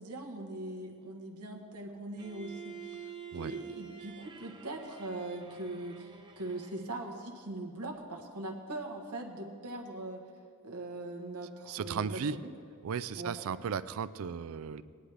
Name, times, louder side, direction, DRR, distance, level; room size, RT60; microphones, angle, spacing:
voice 1, 0.0-3.0 3.3-10.2 10.6-12.5 13.2-13.3, right 2 dB, 90° right, 0 dB, 1.3 m, -41 dB
Bowed string instrument, 2.2-7.1, right 7 dB, 20° right, 0.7 m, -48 dB
voice 2, 11.7-12.4 12.8-14.8, right 6 dB, 70° right, 15 dB, 0.4 m, -35 dB
19.0 x 10.0 x 3.4 m, 2.1 s
head